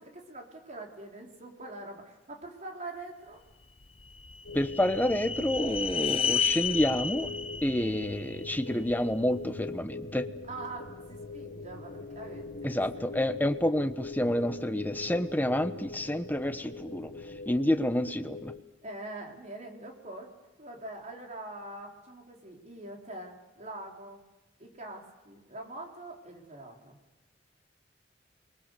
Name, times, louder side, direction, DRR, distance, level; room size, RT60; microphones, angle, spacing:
voice 1, 0.0-3.4 8.7-8.8 10.5-13.0 18.8-20.3 20.6-24.2 24.6-27.0, right 2 dB, 40° right, 1 dB, 4.5 m, -44 dB
sound 1, 3.8-9.0, left 7 dB, 30° left, 0.8 m, -32 dB
sound 2, 4.5-18.6, left 3 dB, 65° left, 1.4 m, -42 dB
voice 2, 4.5-7.3 7.6-10.3 12.6-17.1 17.4-18.5, left 1 dB, 10° left, 8 dB, 1.1 m, -29 dB
29.5 x 23.0 x 6.9 m, 1.1 s
head